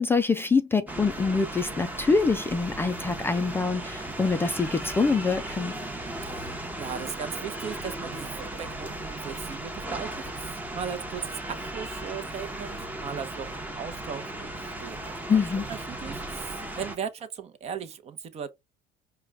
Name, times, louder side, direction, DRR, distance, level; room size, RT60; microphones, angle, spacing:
voice 1, 0.0-5.7 15.3-15.7, left 4 dB, 15° left, 0.3 m, -25 dB
sound 1, 0.9-17.0, right 1 dB, 10° right, 0.8 m, -36 dB
voice 2, 6.8-10.1 10.4-15.4 15.7-18.5, right 7 dB, 40° right, 0.7 m, -37 dB
4.8 x 2.2 x 3.3 m
cardioid pair, 115°, 16 cm